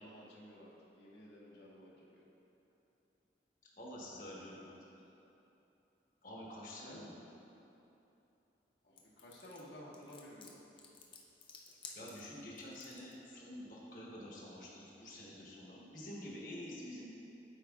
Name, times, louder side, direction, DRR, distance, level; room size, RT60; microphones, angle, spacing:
voice 1, 0.0-2.2 6.8-7.2 8.8-10.6, equal, 80° left, -6 dB, 1.4 m, -54 dB
voice 2, 3.8-5.0 6.2-7.3 11.9-17.1, left 1 dB, 50° left, -4 dB, 1.2 m, -48 dB
sound 1, 9.0-13.1, left 5 dB, 30° left, 0.5 m, -54 dB
11.5 x 4.9 x 2.4 m, 2.9 s
head